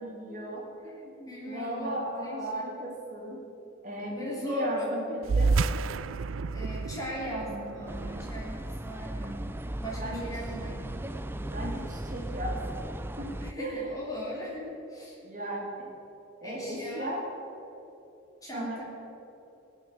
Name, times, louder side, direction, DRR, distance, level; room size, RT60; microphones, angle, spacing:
voice 1, 0.0-0.9 1.5-3.4 3.8-5.6 10.0-10.3 11.5-12.8 13.2-13.9 15.2-15.9 16.4-17.2 18.5-18.8, right 1 dB, 40° right, -3 dB, 2.7 m, -36 dB
voice 2, 1.0-2.7 4.0-4.9 6.5-9.5 9.8-11.0 13.4-15.2 16.4-17.1 18.4-18.8, equal, 15° left, -5 dB, 3.2 m, -38 dB
sound 1, 5.2-10.1, right 4 dB, 85° right, 0.4 m, -31 dB
sound 2, 7.9-13.5, right 1 dB, 10° right, 0.4 m, -36 dB
17.0 x 6.3 x 8.5 m, 2.9 s
head